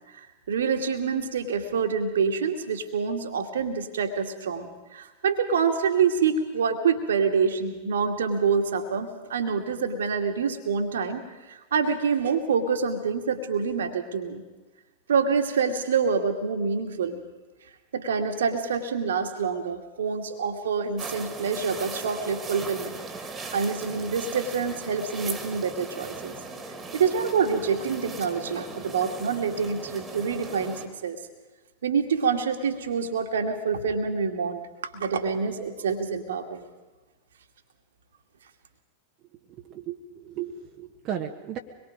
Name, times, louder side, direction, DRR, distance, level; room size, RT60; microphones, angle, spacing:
voice 1, 0.1-14.4 15.1-17.2 17.9-23.0 23.5-26.3 26.9-31.2 31.8-34.6 34.9-36.6, right 5 dB, 65° right, 5 dB, 2.3 m, -26 dB
sound 1, 21.0-30.9, right 3 dB, 20° right, 2.6 m, -38 dB
voice 2, 39.6-41.6, right 9 dB, 35° right, 2 dB, 1.6 m, -35 dB
25.0 x 22.0 x 5.2 m, 1.2 s
figure-of-eight pair, 90°, 0 cm